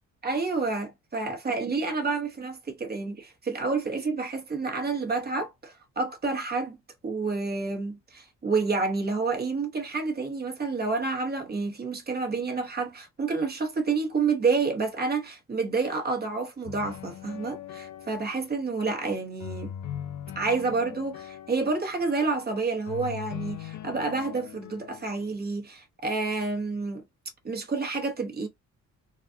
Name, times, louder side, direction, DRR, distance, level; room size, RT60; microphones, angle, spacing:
voice 1, 0.2-6.8 7.0-19.7 20.3-27.0 27.4-28.5, right 4 dB, 30° right, 1.1 m, -29 dB
sound 1, 16.6-18.7 19.4-22.4 22.9-25.3, left 11 dB, 75° left, 0.6 m, -40 dB
4.0 x 2.3 x 2.7 m
cardioid pair, 90°, 30 cm